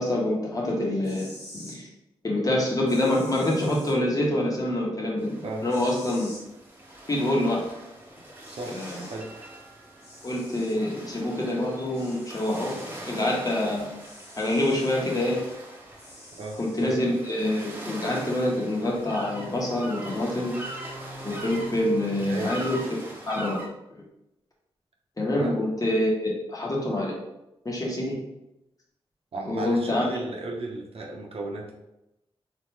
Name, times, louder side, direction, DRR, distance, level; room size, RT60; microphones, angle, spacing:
voice 1, 0.0-1.9 2.2-6.3 7.1-7.7 8.7-9.0 10.2-12.8 13.1-13.9 14.4-15.4 16.6-20.6 21.2-22.8 23.2-23.6 23.9-24.0 25.2-27.2 27.6-28.2 29.5-30.1, left 1 dB, 35° left, -3 dB, 1.3 m, -26 dB
sound 1, 0.9-1.8 2.9-3.9 5.7-6.4 7.9-8.0 8.4-9.2 10.0-10.8 11.9-13.0 14.0-15.0 16.0-16.9, left 1 dB, 80° left, 1.6 m, -47 dB
sound 2, 5.2-23.7, right 1 dB, 20° right, 1.1 m, -41 dB
voice 2, 8.5-8.8 9.1-9.3 16.4-16.9 22.2-22.6 25.4-25.5 29.3-31.7, right 2 dB, 70° right, -1 dB, 0.9 m, -34 dB
3.8 x 3.5 x 3.3 m, 0.88 s
cardioid pair, 70°, 10 cm